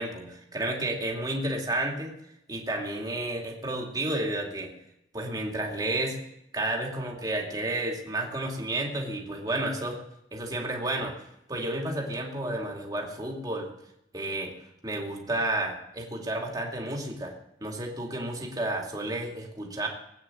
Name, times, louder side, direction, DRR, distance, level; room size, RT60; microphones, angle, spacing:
voice 1, 0.0-2.1 2.5-4.7 5.1-6.2 6.5-10.0 10.3-11.1 11.5-13.7 14.1-14.5 14.8-17.3 17.6-19.9, right 1 dB, 20° right, -1 dB, 2.4 m, -31 dB
19.0 x 8.9 x 7.7 m, 0.82 s
head